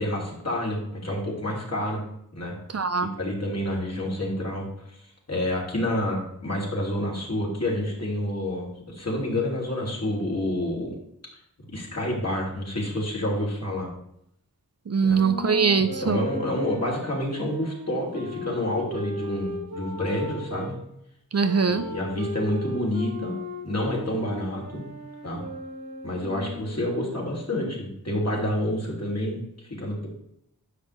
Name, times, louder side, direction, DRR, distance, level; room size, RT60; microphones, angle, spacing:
voice 1, 0.0-2.0 2.3-2.6 3.0-4.7 5.3-10.9 11.7-13.9 15.0-15.2 16.0-20.7 21.6-23.3 23.6-24.8 25.2-25.4 26.0-30.1, left 1 dB, 45° left, -3 dB, 2.9 m, -28 dB
voice 2, 2.7-3.1 14.9-16.2 21.3-21.9, right 5 dB, 45° right, 9 dB, 0.6 m, -22 dB
sound 1, 15.1-20.7 21.4-26.9, equal, 90° right, 3.4 m, -36 dB
9.8 x 6.6 x 3.2 m, 0.75 s
wide cardioid pair, 60°, 35 cm